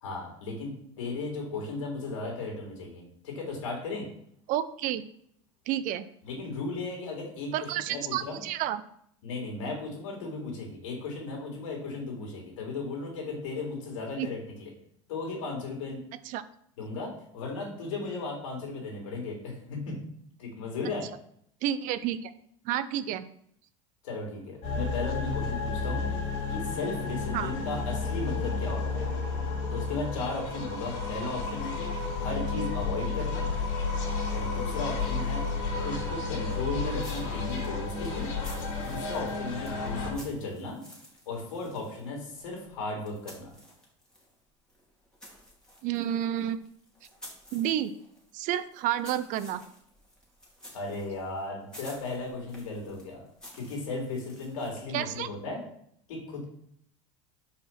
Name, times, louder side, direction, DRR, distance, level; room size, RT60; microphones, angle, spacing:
voice 1, 0.0-4.1 6.2-8.4 9.2-14.7 15.1-16.0 16.8-20.0 20.4-21.1 24.0-26.1 26.5-29.1 29.7-33.5 34.3-35.4 35.8-38.3 38.8-40.8 41.3-43.5 50.7-53.2 53.5-55.6 56.1-56.5, left 3 dB, 80° left, -1 dB, 3.0 m, -36 dB
voice 2, 4.5-5.0 5.7-6.1 7.5-8.8 14.2-14.3 16.2-16.4 21.6-22.3 22.6-23.3 27.3-27.5 45.8-46.6 47.5-47.9 48.3-49.6 54.9-55.3, right 11 dB, 55° right, 14 dB, 0.6 m, -30 dB
sound 1, 24.6-40.1, left 4 dB, 65° left, 2.5 m, -32 dB
sound 2, 37.0-44.3 44.7-54.9, equal, 5° left, 2.5 m, -52 dB
5.1 x 4.9 x 5.9 m, 0.69 s
supercardioid pair, 105°, 16 cm